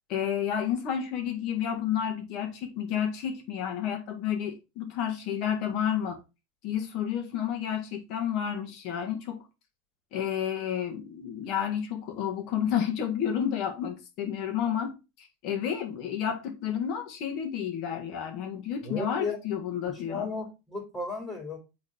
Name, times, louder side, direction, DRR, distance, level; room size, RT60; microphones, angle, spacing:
voice 1, 0.1-6.2 6.6-9.4 10.1-20.3, left 9 dB, 55° left, 1.8 m, -31 dB
voice 2, 18.8-19.4 19.9-21.6, left 3 dB, 15° left, 3.0 m, -34 dB
7.0 x 3.8 x 3.6 m
supercardioid pair, 115°, 0 cm